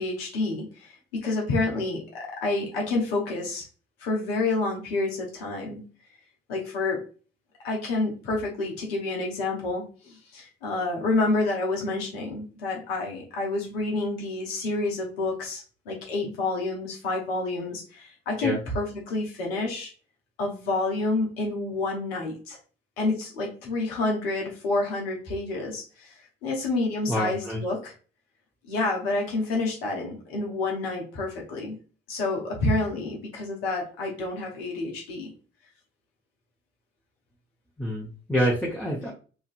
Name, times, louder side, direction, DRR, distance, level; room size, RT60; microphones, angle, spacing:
voice 1, 0.0-3.7 4.0-5.9 6.5-7.0 7.6-19.9 20.4-22.6 23.0-27.9 28.6-31.8 32.1-35.3, left 2 dB, 85° left, -1 dB, 0.9 m, -29 dB
voice 2, 27.1-27.6 37.8-39.1, equal, 5° left, -5 dB, 0.8 m, -27 dB
3.0 x 2.5 x 2.4 m, 0.37 s
hypercardioid pair, 45°, 29 cm